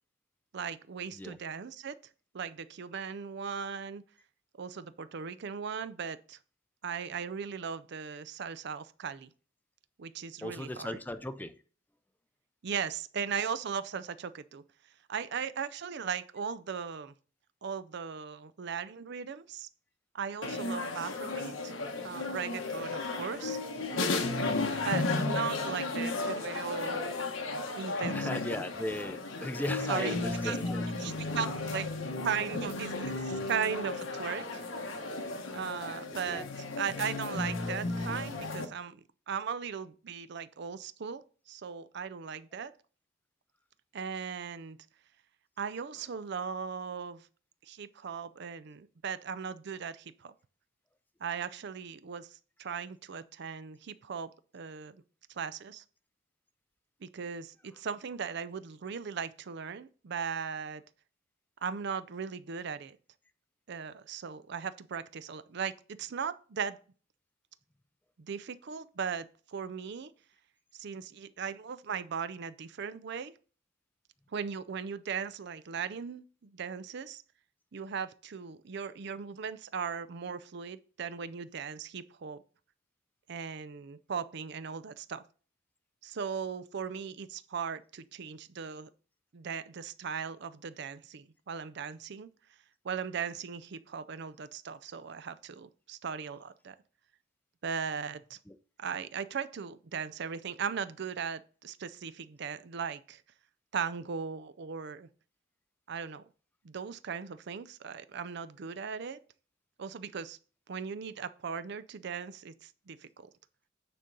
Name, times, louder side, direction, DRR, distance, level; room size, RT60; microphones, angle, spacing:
voice 1, 0.5-2.0 2.3-4.0 4.6-6.4 6.8-9.3 10.0-11.0 12.6-14.6 15.1-17.1 17.6-19.7 20.1-21.7 22.0-23.6 24.7-27.1 27.7-28.4 29.9-30.2 30.4-30.6 31.0-31.9 32.2-34.6 35.5-42.7 43.9-44.8 45.6-47.3 47.6-50.3 51.2-55.0 55.3-55.8 57.0-60.8 61.6-63.0 63.7-66.8 68.2-70.1 70.7-73.3 74.3-77.2 77.7-82.4 83.3-85.2 86.0-88.9 89.3-92.3 92.8-96.8 97.6-98.4 98.8-103.2 103.7-105.1 105.9-106.2 106.6-109.2 109.8-110.4 110.7-113.3, right 6 dB, 60° right, 0.5 m, -38 dB
voice 2, 10.4-11.6 28.1-30.8 36.3-36.5 98.5-98.6, left 1 dB, 10° left, 0.5 m, -37 dB
sound 1, 20.4-38.7, left 3 dB, 85° left, 1.1 m, -34 dB
9.1 x 3.8 x 5.3 m
head